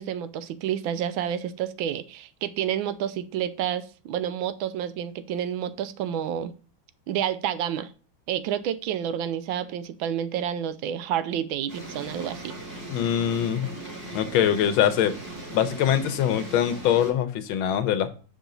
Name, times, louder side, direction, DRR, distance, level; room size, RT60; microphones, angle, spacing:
voice 1, 0.0-6.5 7.1-7.9 8.3-12.6, right 9 dB, 75° right, 13 dB, 1.3 m, -29 dB
sound 1, 11.7-17.1, right 2 dB, 30° right, 1.9 m, -39 dB
voice 2, 12.9-13.7 14.1-15.1 15.5-18.1, left 10 dB, 80° left, 10 dB, 1.5 m, -23 dB
6.2 x 4.9 x 3.8 m, 0.38 s
omnidirectional pair, 2.3 m